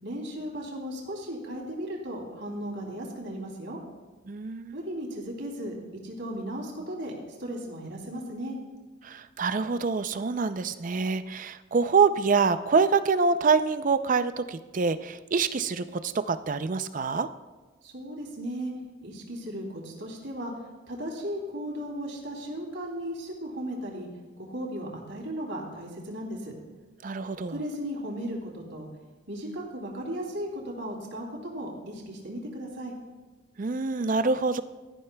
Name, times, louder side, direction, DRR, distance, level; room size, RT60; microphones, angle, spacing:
voice 1, 0.0-3.8 4.7-5.7 6.0-7.1 7.4-8.6 17.8-18.7 19.0-20.5 20.9-24.1 24.4-26.5 27.5-28.9 29.3-32.9, equal, 65° right, -1 dB, 3.0 m, -36 dB
voice 2, 4.3-4.8 9.0-17.3 27.0-27.6 33.6-34.6, right 4 dB, 40° right, 12 dB, 0.4 m, -26 dB
17.5 x 13.0 x 2.3 m, 1.3 s
head